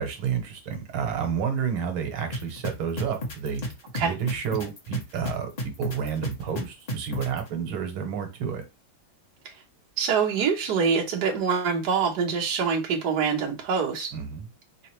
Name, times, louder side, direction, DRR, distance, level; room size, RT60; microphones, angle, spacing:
voice 1, 0.0-3.6 4.0-8.6 14.1-14.5, right 7 dB, 90° right, 1.7 m, -30 dB
sound 1, 2.3-7.4, left 1 dB, 60° left, 0.4 m, -32 dB
voice 2, 10.0-14.1, right 6 dB, 60° right, 1.5 m, -25 dB
3.9 x 3.5 x 3.0 m
omnidirectional pair, 2.2 m